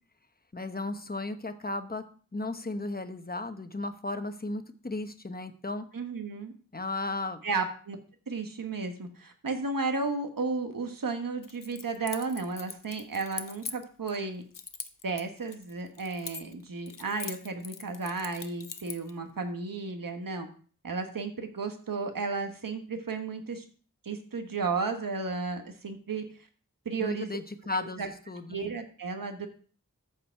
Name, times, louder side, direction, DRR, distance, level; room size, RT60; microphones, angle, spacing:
voice 1, 0.5-2.0 2.3-5.9 6.7-7.4 27.0-28.6, left 2 dB, 30° left, 9 dB, 1.0 m, -35 dB
voice 2, 5.9-6.5 7.4-8.0 8.3-14.4 15.0-20.5 20.8-23.6 24.0-26.3 26.8-27.4 27.7-28.1 28.5-29.5, right 4 dB, 85° right, 5 dB, 1.3 m, -33 dB
Keys jangling, 11.4-14.2 14.5-16.6 16.9-19.1, left 6 dB, 75° left, 0.8 m, -41 dB
14.0 x 4.8 x 4.6 m, 0.42 s
wide cardioid pair, 60°, 33 cm